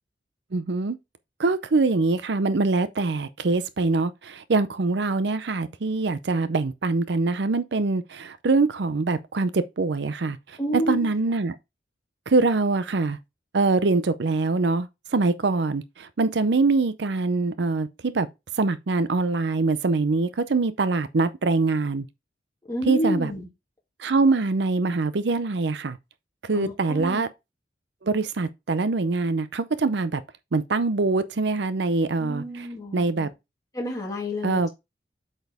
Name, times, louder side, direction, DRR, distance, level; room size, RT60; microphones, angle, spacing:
voice 1, 0.5-1.0 1.4-11.5 12.3-13.2 13.5-18.3 18.6-22.1 22.9-23.3 24.0-26.0 26.4-27.3 28.0-30.2 30.5-32.7 32.9-33.3 34.4-34.7, right 3 dB, 70° right, 0.6 m, -24 dB
voice 2, 10.6-11.1 22.7-23.5 26.5-27.2 32.2-33.3 33.7-34.7, equal, 20° left, 2.5 m, -29 dB
7.9 x 4.4 x 3.5 m
head